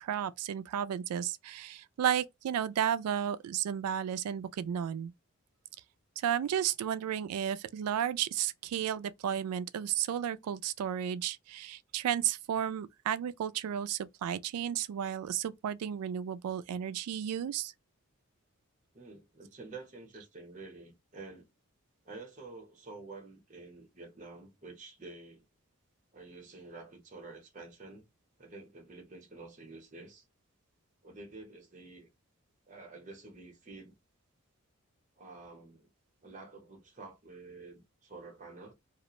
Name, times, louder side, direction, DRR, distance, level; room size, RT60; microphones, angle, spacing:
voice 1, 0.0-5.1 6.2-17.7, right 9 dB, 85° right, 0.3 m, -33 dB
voice 2, 18.9-21.5 22.0-25.4 26.1-28.1 28.4-30.2 31.0-32.1 32.7-33.9 35.2-35.9 36.2-38.7, right 3 dB, 35° right, 0.8 m, -49 dB
2.4 x 2.1 x 2.9 m
head